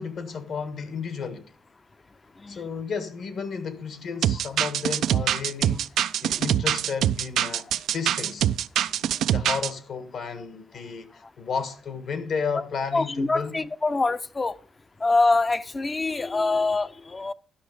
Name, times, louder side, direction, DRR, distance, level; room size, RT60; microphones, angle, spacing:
voice 1, 0.0-1.4 2.5-5.9 6.2-8.5 9.2-13.6, left 5 dB, 65° left, 1.5 m, -33 dB
sound 1, 4.2-9.7, right 11 dB, 75° right, 0.3 m, -24 dB
voice 2, 12.9-14.5 15.0-17.3, left 3 dB, 25° left, 0.6 m, -24 dB
12.0 x 6.1 x 4.9 m
cardioid pair, 90°, 0 cm